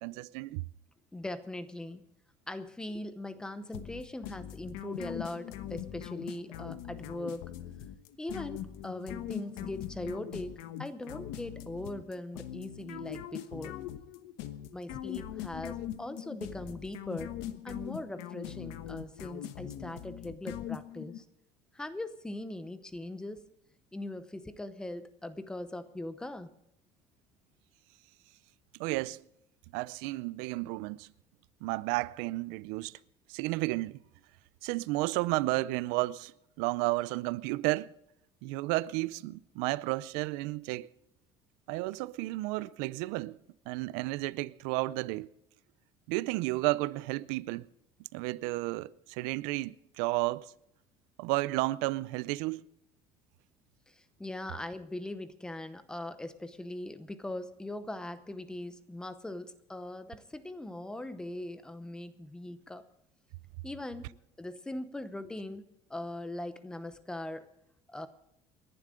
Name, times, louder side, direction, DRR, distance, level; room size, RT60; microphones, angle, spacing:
voice 1, 0.0-0.6 28.8-29.2 29.7-31.1 31.6-33.0 33.3-34.0 34.6-37.9 38.4-40.9 41.7-43.4 43.7-45.3 46.1-47.7 48.1-50.5 51.2-52.7, right 20 dB, 90° right, 0.5 m, -32 dB
voice 2, 1.1-2.1 2.5-7.5 8.2-13.8 14.7-17.3 17.6-21.2 21.7-23.5 23.9-26.5 53.9-62.8 63.6-64.1 64.4-67.5 67.9-68.1, left 1 dB, 5° left, 0.8 m, -40 dB
sound 1, 3.7-21.2, left 11 dB, 90° left, 1.2 m, -41 dB
29.5 x 11.0 x 3.8 m
cardioid pair, 170°, 12 cm